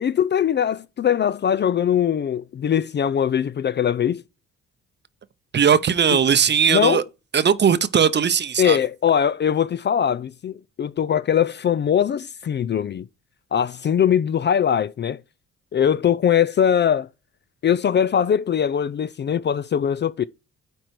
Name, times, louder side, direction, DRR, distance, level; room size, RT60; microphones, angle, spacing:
voice 1, 0.0-4.2 6.7-7.0 8.6-13.1 13.5-15.2 15.7-17.1 17.6-20.2, left 8 dB, 35° left, 0.4 m, -21 dB
voice 2, 5.5-7.0 7.3-8.8, right 7 dB, 35° right, 0.7 m, -18 dB
9.1 x 4.5 x 4.6 m
cardioid pair, 90°, 30 cm